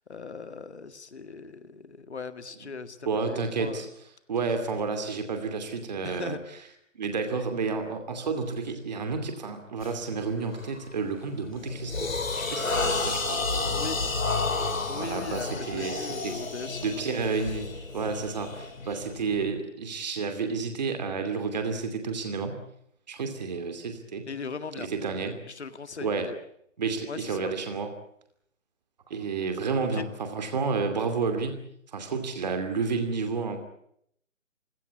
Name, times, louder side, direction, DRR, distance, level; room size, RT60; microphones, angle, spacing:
voice 1, 0.0-3.9 6.0-6.4 13.7-14.0 14.9-17.0 24.3-24.9 25.2-26.4 27.1-27.6 29.9-30.1, left 5 dB, 60° left, 11 dB, 2.1 m, -39 dB
voice 2, 3.1-3.9 4.3-6.4 6.9-13.5 14.9-16.4 16.8-17.7 17.9-22.6 23.1-24.3 24.8-25.4 26.0-26.3 26.8-27.9 29.1-31.6 31.9-33.6, right 4 dB, 35° right, 6 dB, 2.7 m, -31 dB
sound 1, 9.8-10.0 10.5-10.8 11.3-19.4, left 3 dB, 85° left, 5.0 m, -31 dB
sound 2, 11.5-19.6, left 3 dB, 35° left, 3.9 m, -44 dB
26.5 x 17.5 x 8.4 m, 0.71 s
hypercardioid pair, 170°, 39 cm